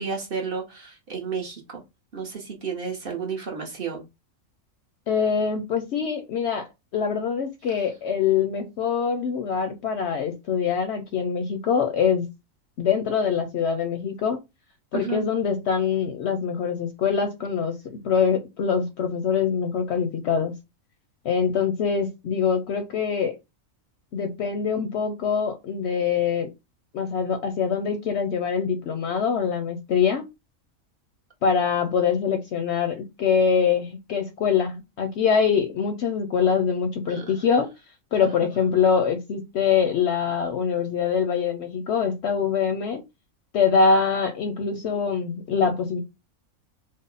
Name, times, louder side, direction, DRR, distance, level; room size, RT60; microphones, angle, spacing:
voice 1, 0.0-1.8 2.1-4.0 14.9-15.2 37.1-37.4 38.2-38.5, right 5 dB, 50° right, 0.8 m, -32 dB
voice 2, 5.1-6.7 6.9-12.3 12.8-14.4 14.9-17.7 18.0-20.5 21.2-23.3 24.1-26.5 26.9-30.3 31.4-37.7 38.1-43.0 43.5-46.0, left 6 dB, 65° left, 0.7 m, -24 dB
3.6 x 2.0 x 3.8 m
omnidirectional pair, 1.4 m